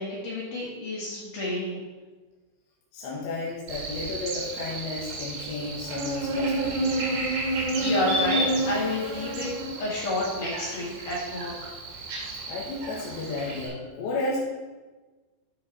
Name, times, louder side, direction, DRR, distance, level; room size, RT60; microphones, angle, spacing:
voice 1, 0.0-1.8 7.8-9.5 9.8-11.8, left 1 dB, 55° left, -6 dB, 3.0 m, -30 dB
voice 2, 2.9-7.0 12.5-14.4, left 2 dB, 75° left, -5 dB, 3.5 m, -33 dB
Buzz, 3.7-13.7, right 2 dB, 55° right, 3.4 m, -30 dB
12.5 x 4.7 x 4.2 m, 1.3 s
omnidirectional pair, 5.4 m